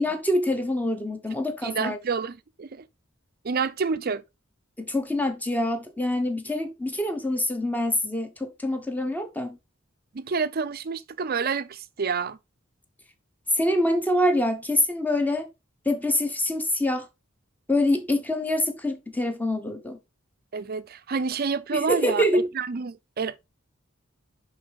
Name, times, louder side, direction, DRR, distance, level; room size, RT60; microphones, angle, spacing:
voice 1, 0.0-2.0 4.8-9.6 13.6-15.5 15.8-17.1 17.7-20.0 21.7-22.5, left 1 dB, 10° left, 1.1 m, -25 dB
voice 2, 1.6-2.8 3.4-4.2 10.1-12.4 20.5-23.4, right 5 dB, 45° right, 0.5 m, -28 dB
10.5 x 4.0 x 3.5 m
head